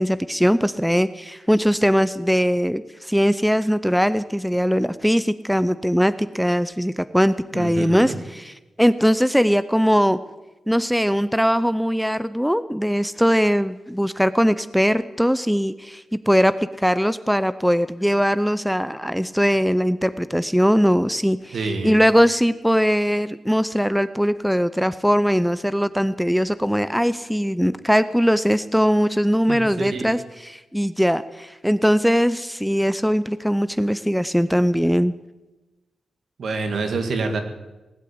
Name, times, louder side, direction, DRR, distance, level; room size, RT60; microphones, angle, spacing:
voice 1, 0.0-10.2 10.7-21.5 21.8-35.1, equal, ahead, 14 dB, 0.5 m, -20 dB
voice 2, 7.5-8.2 21.5-22.0 29.5-30.1 36.4-37.4, right 3 dB, 70° right, 6 dB, 2.1 m, -27 dB
18.5 x 8.3 x 8.5 m, 1.1 s
cardioid pair, 80°, 0 cm